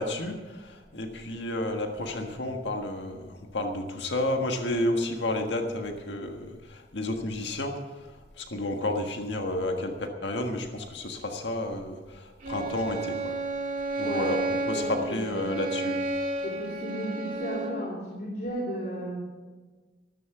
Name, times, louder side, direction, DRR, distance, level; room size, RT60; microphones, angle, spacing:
voice 1, 0.0-13.4 14.0-14.4 14.7-16.0, left 1 dB, 80° left, 4 dB, 1.6 m, -31 dB
Bowed string instrument, 12.4-17.9, right 2 dB, 50° right, 2.7 m, -32 dB
voice 2, 14.7-15.5 16.4-19.2, right 1 dB, 55° left, -5 dB, 3.2 m, -34 dB
14.0 x 13.5 x 6.1 m, 1.3 s
head